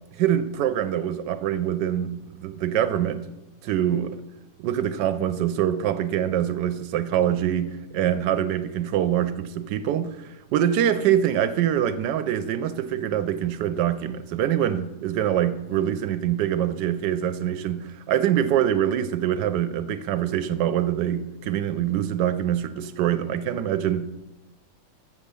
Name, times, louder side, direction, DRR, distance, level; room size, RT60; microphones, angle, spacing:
voice 1, 0.1-3.2 3.6-4.2 4.6-24.1, right 10 dB, 75° right, 11 dB, 1.1 m, -24 dB
7.3 x 7.2 x 6.7 m, 1.0 s
omnidirectional pair, 2.1 m